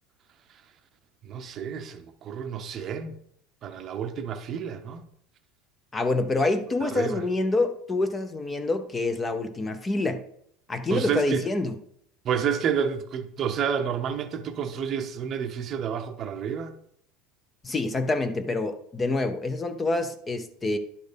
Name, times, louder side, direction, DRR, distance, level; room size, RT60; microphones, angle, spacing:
voice 1, 1.3-3.1 3.6-5.1 6.8-7.2 10.9-11.4 12.2-16.7, right 7 dB, 35° right, 0.7 m, -30 dB
voice 2, 5.9-10.2 10.7-11.8 17.6-20.8, left 2 dB, 15° left, 0.6 m, -26 dB
10.5 x 4.2 x 5.1 m
supercardioid pair, 145°, 0 cm